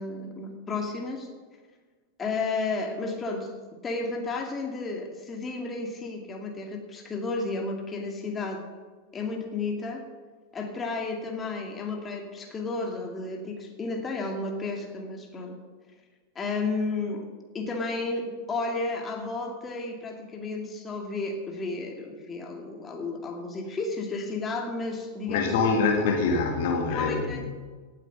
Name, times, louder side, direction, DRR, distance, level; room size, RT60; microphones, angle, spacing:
voice 1, 0.0-1.4 2.2-8.6 9.1-10.0 10.5-15.6 16.4-17.3 17.5-25.8 26.9-27.5, left 3 dB, 20° left, 2 dB, 2.1 m, -32 dB
voice 2, 25.3-27.5, left 4 dB, 50° left, 3 dB, 2.2 m, -25 dB
17.5 x 8.5 x 5.5 m, 1.4 s
figure-of-eight pair, 90°, 0 cm